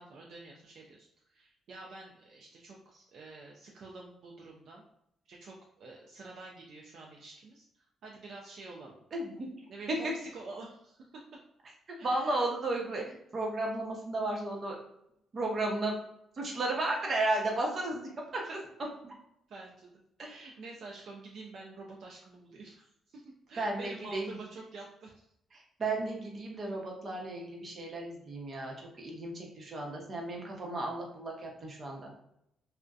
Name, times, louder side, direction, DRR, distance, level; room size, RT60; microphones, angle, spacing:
voice 1, 0.0-2.8 3.1-4.8 5.3-7.7 8.0-9.0 9.7-11.2 12.0-12.4 19.5-19.9 20.2-25.2, right 3 dB, 65° right, -2 dB, 0.4 m, -48 dB
voice 2, 9.1-9.5 10.0-10.1 12.0-14.8 15.3-16.0 16.4-18.6 19.0-19.1 20.2-20.3 23.6-24.4 25.5-32.1, right 2 dB, 45° right, 0 dB, 0.7 m, -34 dB
2.5 x 2.1 x 2.3 m, 0.78 s
cardioid pair, 90°, 0 cm